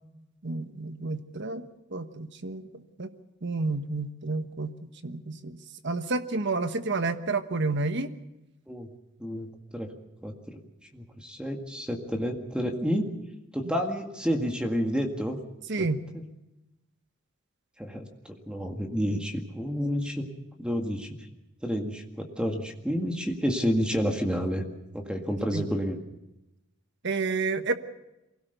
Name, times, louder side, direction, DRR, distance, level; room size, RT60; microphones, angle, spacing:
voice 1, 0.4-3.1 3.4-5.6 5.8-8.1 15.7-16.0 25.5-25.7 27.0-27.7, right 3 dB, 60° right, 10 dB, 1.2 m, -30 dB
voice 2, 9.2-9.9 10.2-10.6 10.9-13.1 13.5-15.4 15.8-15.9 16.1-16.2 17.8-20.3 20.6-21.2 21.6-24.7 24.9-26.0, equal, 5° right, 3 dB, 1.9 m, -30 dB
23.5 x 17.5 x 6.8 m, 0.93 s
head